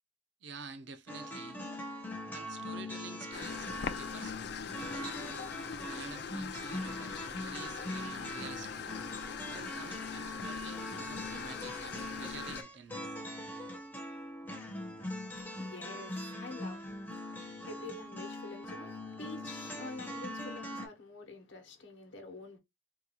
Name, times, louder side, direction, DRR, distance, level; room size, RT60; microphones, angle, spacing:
voice 1, 0.4-1.6 2.3-4.4 4.8-5.5 5.9-8.9 9.5-13.2, right 5 dB, 60° right, 0.5 m, -49 dB
sound 1, 1.1-20.9, left 1 dB, 10° left, 0.6 m, -42 dB
sound 2, 3.3-12.6, left 6 dB, 55° left, 0.3 m, -42 dB
voice 2, 15.3-22.6, left 3 dB, 70° left, 0.9 m, -47 dB
3.9 x 2.3 x 2.8 m
head